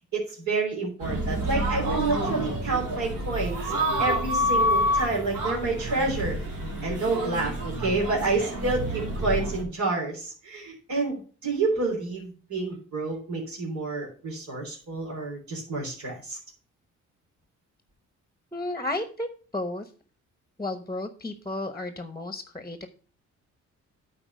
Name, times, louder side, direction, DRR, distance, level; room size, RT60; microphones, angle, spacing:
voice 1, 0.1-3.6 4.0-6.4 6.8-16.4, right 3 dB, 65° right, -2 dB, 3.5 m, -29 dB
sound 1, 1.0-9.6, equal, 85° right, 2.9 m, -28 dB
voice 2, 18.5-19.9 20.6-22.9, left 2 dB, 10° left, 9 dB, 1.0 m, -33 dB
8.9 x 4.4 x 6.4 m, 0.41 s
cardioid pair, 90°, 30 cm